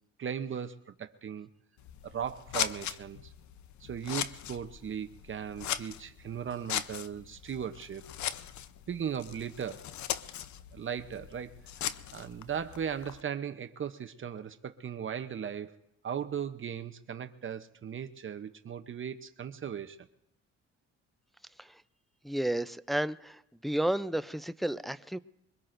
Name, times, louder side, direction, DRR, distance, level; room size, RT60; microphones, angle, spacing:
voice 1, 0.2-1.5 2.0-3.3 3.8-8.0 8.9-9.9 10.7-11.5 12.1-15.8 16.0-20.0, right 8 dB, 45° right, 0.8 m, -37 dB
Scissors, 1.8-13.2, left 11 dB, 70° left, 0.7 m, -39 dB
voice 2, 22.2-25.2, right 1 dB, ahead, 0.4 m, -32 dB
23.5 x 21.0 x 2.6 m
cardioid pair, 90°, 30 cm